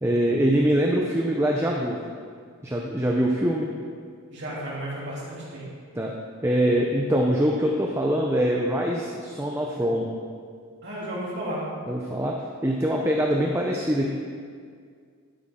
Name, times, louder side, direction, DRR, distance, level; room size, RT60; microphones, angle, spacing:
voice 1, 0.0-2.0 2.6-3.7 6.0-6.1 6.4-10.1 11.9-12.4 12.6-14.1, equal, 10° right, -1 dB, 0.6 m, -23 dB
voice 2, 4.3-5.7 10.8-11.6, right 1 dB, 50° right, -7 dB, 3.1 m, -33 dB
12.0 x 10.0 x 3.7 m, 2.1 s
head